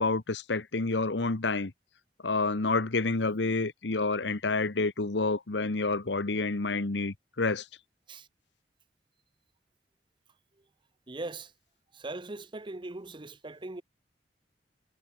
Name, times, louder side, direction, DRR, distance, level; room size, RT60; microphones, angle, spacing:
voice 1, 0.0-1.7 2.2-7.6, left 3 dB, 80° left, 1.2 m, -29 dB
voice 2, 11.1-11.5 11.9-13.8, right 2 dB, 25° right, 0.8 m, -40 dB
head